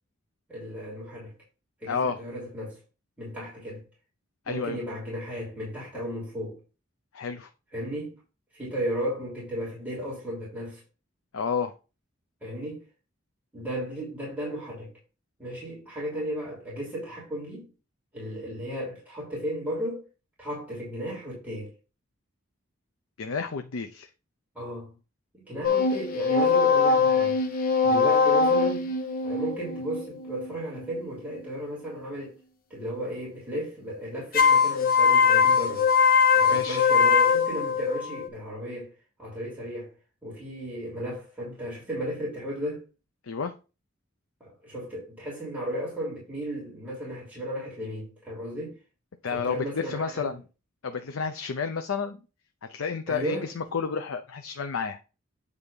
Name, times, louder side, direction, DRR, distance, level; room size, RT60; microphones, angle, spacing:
voice 1, 0.5-1.3 1.8-2.8 3.2-3.8 4.5-6.6 7.7-8.2 8.5-10.8 12.4-12.8 13.5-14.9 15.4-17.7 18.1-20.0 20.4-21.7 24.5-24.9 25.3-27.4 27.8-28.9 29.2-32.4 32.7-35.9 36.3-38.9 39.2-39.9 40.2-42.8 44.4-48.8 49.3-50.4 53.1-53.5, equal, 10° right, 3.0 m, -34 dB
voice 2, 1.9-2.2 4.5-4.8 7.1-7.5 11.3-11.7 23.2-24.1 36.5-36.8 43.2-43.5 49.2-50.4 50.8-52.2 52.6-55.0, left 5 dB, 90° left, 0.6 m, -31 dB
sound 1, 25.6-31.0 34.3-38.3, left 5 dB, 45° left, 1.0 m, -22 dB
8.3 x 3.5 x 5.3 m
head